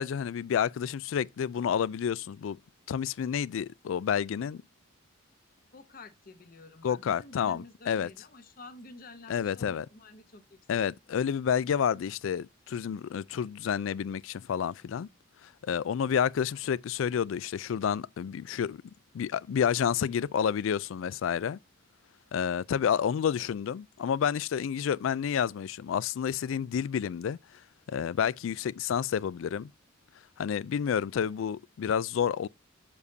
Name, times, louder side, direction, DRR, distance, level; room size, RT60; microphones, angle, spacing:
voice 1, 0.0-2.6 2.9-4.6 6.8-8.1 9.3-9.9 10.7-15.1 15.4-18.8 19.1-21.6 22.3-27.4 27.9-29.7 30.4-32.5, left 8 dB, 75° left, 0.3 m, -29 dB
voice 2, 5.7-10.9, left 2 dB, 45° left, 0.9 m, -50 dB
7.1 x 6.7 x 2.7 m
head